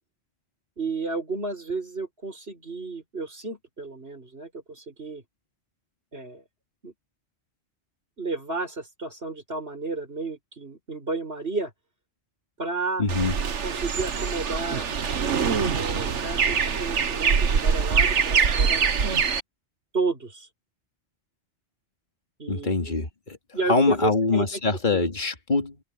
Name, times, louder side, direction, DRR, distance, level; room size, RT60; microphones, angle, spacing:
voice 1, 0.8-5.2 6.1-6.4 6.8-6.9 8.2-11.7 12.6-13.0 13.6-14.9 15.7-18.8 19.9-20.5 22.4-23.1 23.5-24.6, right 3 dB, 60° right, 6.5 m, -32 dB
voice 2, 13.0-13.3 22.5-23.4 23.7-25.8, left 3 dB, 45° left, 2.6 m, -24 dB
sound 1, 13.1-19.4, right 6 dB, 90° right, 1.5 m, -24 dB
omnidirectional pair, 1.2 m